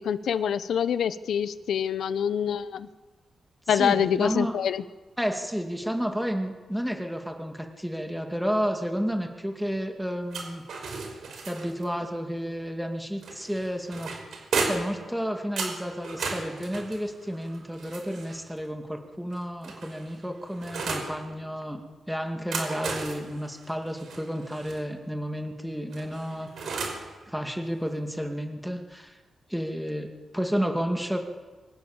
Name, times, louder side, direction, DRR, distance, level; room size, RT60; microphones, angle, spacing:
voice 1, 0.0-2.9 3.7-4.8, left 8 dB, 85° left, 14 dB, 1.0 m, -26 dB
voice 2, 3.7-4.6 5.2-10.6 11.5-14.1 14.6-21.8 22.1-26.8 27.3-29.2 29.5-31.2, equal, ahead, 4 dB, 2.3 m, -31 dB
sound 1, 10.3-11.9 13.2-15.0 15.6-18.5 19.3-21.1 22.3-24.8 25.9-27.1, right 4 dB, 75° right, 5.3 m, -34 dB
27.0 x 24.5 x 7.3 m, 1.3 s
wide cardioid pair, 150°, 0 cm